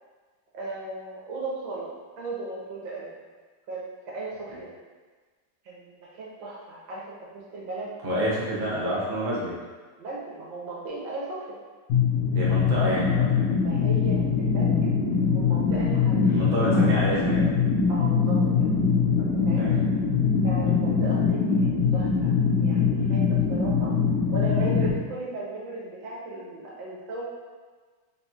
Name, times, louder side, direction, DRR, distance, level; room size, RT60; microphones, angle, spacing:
voice 1, 0.5-1.9 2.2-3.1 3.7-4.7 5.6-7.2 7.5-7.9 8.5-8.7 10.0-11.6 13.6-15.0 15.3-16.9 17.9-18.7 19.2-19.7 20.4-22.3 22.6-24.0 24.3-27.2, right 2 dB, 85° right, -6 dB, 1.7 m, -36 dB
voice 2, 8.0-9.5 12.3-13.5 16.3-17.5 19.6-19.8 20.6-20.8, right 1 dB, 60° right, -6 dB, 0.5 m, -28 dB
sound 1, 11.9-24.9, left 5 dB, 60° left, 1.2 m, -23 dB
4.0 x 2.3 x 4.1 m, 1.4 s
omnidirectional pair, 2.0 m